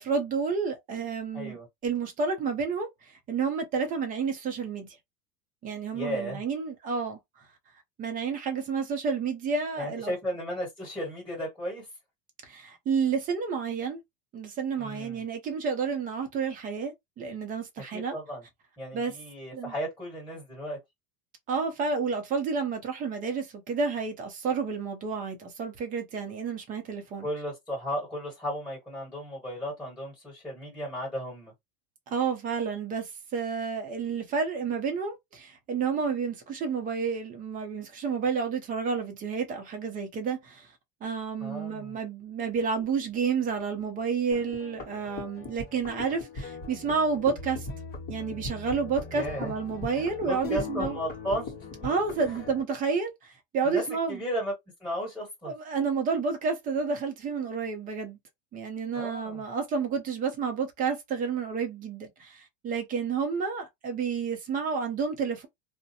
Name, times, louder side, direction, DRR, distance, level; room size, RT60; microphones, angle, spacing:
voice 1, 0.0-1.6 1.8-4.9 5.6-7.2 8.0-10.1 12.4-14.0 14.3-18.1 18.9-19.1 19.5-19.7 21.5-27.3 32.1-40.7 41.0-47.7 48.1-51.0 51.8-54.2 55.4-58.2 58.5-65.5, right 5 dB, 25° right, 0.7 m, -30 dB
voice 2, 1.3-1.7 5.9-6.4 9.8-11.9 14.8-15.2 17.9-18.4 18.8-20.8 27.2-31.5 41.4-41.9 49.1-49.5 49.9-51.5 52.2-52.4 53.6-53.8 54.1-54.5 54.8-55.5 58.9-59.4, equal, 5° left, 1.5 m, -34 dB
sound 1, 44.3-52.6, left 3 dB, 30° left, 1.3 m, -39 dB
2.5 x 2.1 x 2.7 m
supercardioid pair, 150°, 31 cm